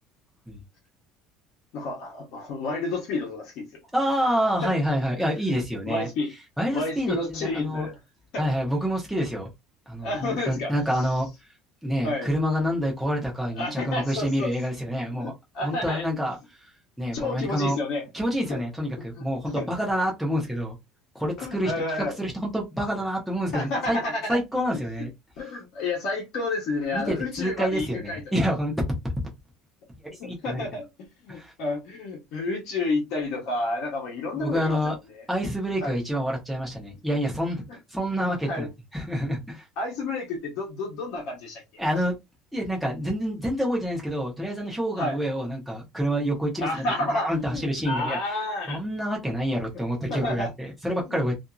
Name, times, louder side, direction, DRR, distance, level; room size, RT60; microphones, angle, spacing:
voice 1, 1.7-3.7 4.6-4.8 5.9-6.3 6.7-8.0 8.3-8.5 10.0-11.1 12.0-12.3 13.6-14.5 15.1-16.1 17.1-18.1 18.5-18.6 19.0-19.7 21.4-22.2 23.5-24.4 24.7-25.1 25.4-28.2 30.2-30.9 31.2-35.2 35.8-36.0 37.7-37.8 38.4-38.7 39.8-41.6 45.0-45.2 46.6-48.8 50.1-50.5 51.1-51.2, left 2 dB, 55° left, 1.0 m, -30 dB
voice 2, 3.9-6.1 6.6-7.9 8.4-9.5 9.9-11.3 11.8-15.3 15.6-16.4 17.0-17.8 18.1-20.8 21.1-21.7 22.2-24.0 24.3-25.1 26.9-28.7 30.2-30.6 31.3-31.5 34.3-34.9 35.3-37.6 37.9-39.6 41.8-42.1 42.5-48.2 48.7-51.3, equal, ahead, 0.8 m, -27 dB
2.6 x 2.6 x 2.3 m
cardioid pair, 180°, 0 cm